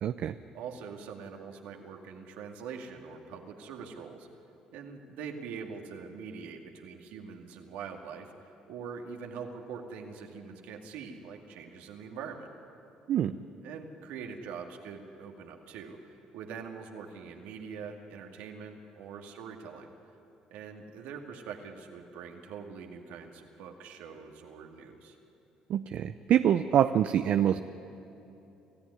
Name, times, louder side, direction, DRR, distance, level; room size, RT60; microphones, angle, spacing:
voice 1, 0.0-0.3 13.1-13.4 25.7-27.6, right 10 dB, 60° right, 10 dB, 0.6 m, -25 dB
voice 2, 0.5-4.3 4.7-12.5 13.6-19.9 20.5-25.2, right 6 dB, 75° right, 3 dB, 2.2 m, -43 dB
26.5 x 14.5 x 9.8 m, 3.0 s
hypercardioid pair, 60°, 3 cm